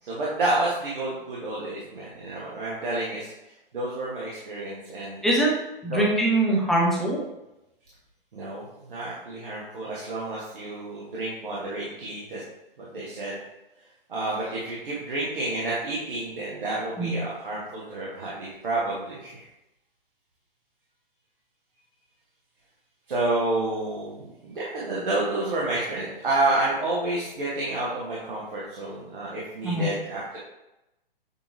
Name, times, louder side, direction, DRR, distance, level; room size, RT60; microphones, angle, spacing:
voice 1, 0.0-3.3 3.7-5.2 5.9-6.0 6.5-6.6 8.3-12.4 12.8-13.4 14.1-19.5 23.1-30.4, right 2 dB, 65° right, -6 dB, 1.2 m, -29 dB
voice 2, 5.2-5.5 5.8-7.2 17.0-17.2 29.6-29.9, right 1 dB, ahead, -5 dB, 0.4 m, -22 dB
6.7 x 2.9 x 2.6 m, 0.92 s
figure-of-eight pair, 125°, 29 cm